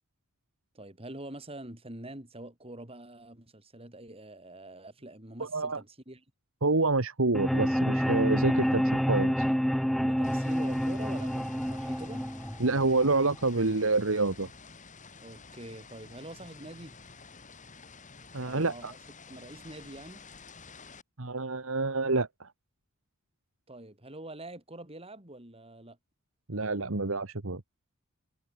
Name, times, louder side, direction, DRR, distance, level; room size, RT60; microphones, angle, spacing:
voice 1, 0.7-6.2 10.0-12.3 15.2-17.0 18.5-19.0 19.3-20.2 23.7-26.0, right 1 dB, 25° right, 5.4 m, -45 dB
voice 2, 5.4-5.8 6.6-9.4 12.6-14.5 18.3-18.9 21.2-22.5 26.5-27.6, right 3 dB, 65° right, 1.5 m, -28 dB
sound 1, 7.3-13.3, equal, ahead, 0.4 m, -28 dB
sound 2, 10.2-21.0, left 4 dB, 35° left, 5.1 m, -51 dB
head